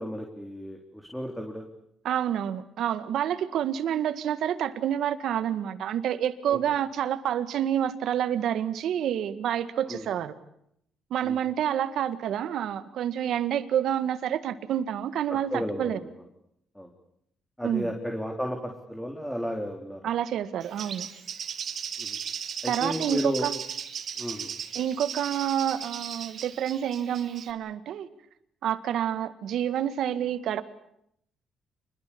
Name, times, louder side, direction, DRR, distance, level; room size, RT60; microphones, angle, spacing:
voice 1, 0.0-1.6 6.5-6.6 9.9-10.1 11.2-11.4 15.3-16.0 16.8-16.9 17.6-20.0 22.0-22.2 22.6-23.5 24.2-24.5, equal, 5° left, 3 dB, 3.7 m, -33 dB
voice 2, 2.0-10.3 11.1-16.0 17.6-17.9 20.0-21.1 22.7-23.6 24.8-28.1 28.6-30.6, right 10 dB, 75° right, 12 dB, 1.8 m, -28 dB
Bird, 20.6-27.5, right 7 dB, 60° right, 2.7 m, -36 dB
27.5 x 22.0 x 8.7 m, 0.74 s
cardioid pair, 90°, 0 cm